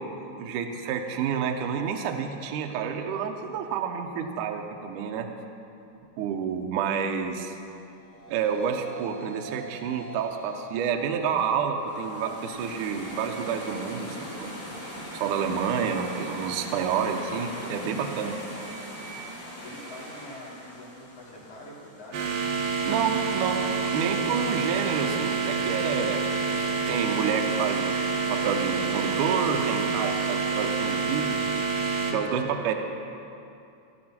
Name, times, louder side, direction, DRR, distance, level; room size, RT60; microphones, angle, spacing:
voice 1, 0.0-5.3 6.2-7.6 8.3-14.6 15.1-18.4 22.9-23.7 23.9-28.0 28.3-31.4 32.1-32.7, right 7 dB, 85° right, 4 dB, 1.8 m, -29 dB
sound 1, 7.8-16.9, right 1 dB, 75° left, 3.5 m, -47 dB
sound 2, 11.8-22.8, equal, 20° left, 2.4 m, -40 dB
voice 2, 19.4-22.3, left 1 dB, 40° left, -8 dB, 4.1 m, -45 dB
sound 3, 22.1-32.1, right 5 dB, 65° right, 2.7 m, -27 dB
17.5 x 11.5 x 4.4 m, 2.7 s
omnidirectional pair, 4.8 m